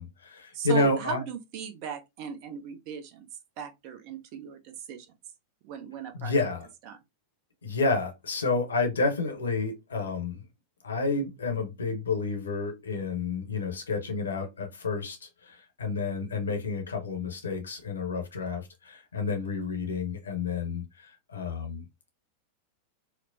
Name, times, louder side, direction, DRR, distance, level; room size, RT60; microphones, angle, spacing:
voice 1, 0.0-1.2 6.1-6.7 7.6-10.4 10.8-21.8, left 4 dB, 70° left, 0.8 m, -30 dB
voice 2, 0.5-3.3 3.6-5.1 5.6-6.3 6.9-7.0, right 8 dB, 45° right, 0.7 m, -37 dB
4.4 x 2.1 x 2.5 m
figure-of-eight pair, 90°, 0 cm